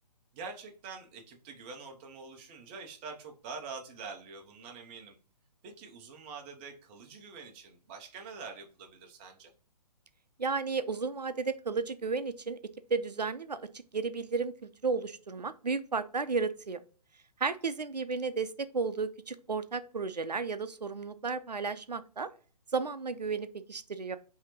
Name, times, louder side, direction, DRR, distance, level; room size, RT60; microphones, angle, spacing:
voice 1, 0.3-5.2 5.6-9.5, right 4 dB, 15° right, 3 dB, 0.5 m, -45 dB
voice 2, 10.4-12.6 12.9-13.6 13.9-16.8 17.4-22.3 22.7-24.2, right 4 dB, 85° right, 12 dB, 0.5 m, -33 dB
5.7 x 2.8 x 2.9 m, 0.39 s
figure-of-eight pair, 135°, 21 cm